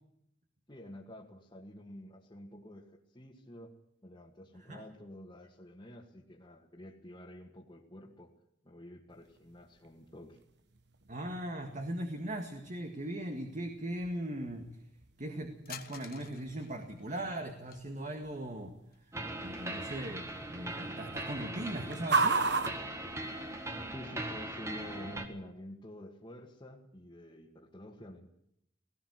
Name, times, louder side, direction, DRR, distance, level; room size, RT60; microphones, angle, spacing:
voice 1, 0.7-3.7 4.0-8.3 8.6-10.4 23.9-28.3, left 1 dB, 25° left, -4 dB, 2.1 m, -49 dB
sound 1, 9.1-23.9, right 4 dB, 65° right, 1.4 m, -39 dB
voice 2, 11.1-14.6 15.2-18.8 19.1-20.2 20.5-22.5, right 1 dB, 40° right, 4 dB, 1.9 m, -39 dB
sound 2, 15.7-17.8 18.9-19.7 20.0-20.1 21.1-21.2 21.6-22.7, left 9 dB, 55° left, 1.4 m, -52 dB
sound 3, 19.1-25.3, right 1 dB, 15° right, 1.8 m, -40 dB
18.0 x 17.5 x 8.0 m, 0.74 s
head